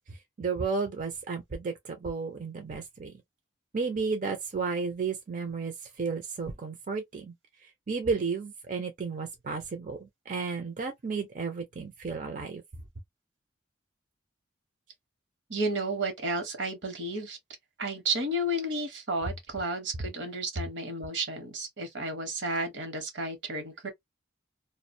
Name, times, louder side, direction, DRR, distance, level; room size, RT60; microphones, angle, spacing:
voice 1, 0.4-3.1 3.7-7.3 7.6-12.6, right 4 dB, 45° right, 0.4 m, -33 dB
voice 2, 15.5-17.4 17.8-23.9, right 1 dB, 75° right, 0.9 m, -32 dB
2.3 x 2.1 x 2.6 m
head